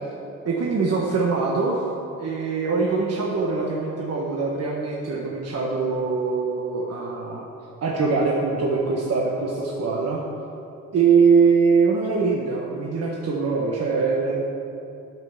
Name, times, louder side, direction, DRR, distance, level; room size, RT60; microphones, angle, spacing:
voice 1, 0.4-1.8 2.2-7.4 7.8-10.2 10.9-14.4, right 5 dB, 55° right, -3 dB, 1.3 m, -22 dB
9.1 x 6.0 x 7.1 m, 2.8 s
cardioid pair, 90°, 30 cm